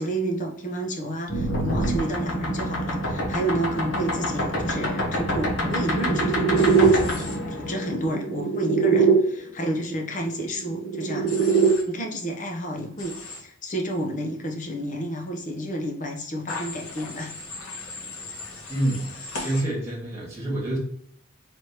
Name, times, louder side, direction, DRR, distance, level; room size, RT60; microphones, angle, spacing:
voice 1, 0.0-17.3, right 1 dB, 35° left, 2 dB, 0.8 m, -30 dB
sound 1, 1.3-9.2 10.5-11.7, right 3 dB, 50° left, 1.2 m, -23 dB
Human voice / Train, 6.6-7.4 11.3-11.8 13.0-13.4 16.5-19.6, left 3 dB, 85° left, 1.3 m, -37 dB
voice 2, 18.7-20.8, right 1 dB, 15° right, -4 dB, 1.8 m, -28 dB
4.4 x 3.3 x 3.0 m, 0.65 s
head